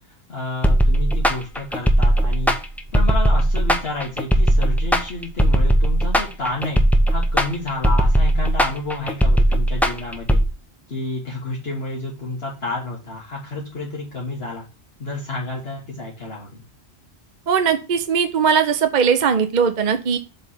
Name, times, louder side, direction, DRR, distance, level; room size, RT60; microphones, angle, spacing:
voice 1, 0.3-2.6 2.9-6.8 7.1-10.4 10.9-14.7 15.0-16.6, left 2 dB, 60° left, -4 dB, 1.7 m, -30 dB
sound 1, 0.6-10.4, right 1 dB, ahead, 0.5 m, -18 dB
voice 2, 17.5-20.2, right 6 dB, 50° right, 8 dB, 0.7 m, -19 dB
7.5 x 3.2 x 5.6 m, 0.31 s
omnidirectional pair, 1.2 m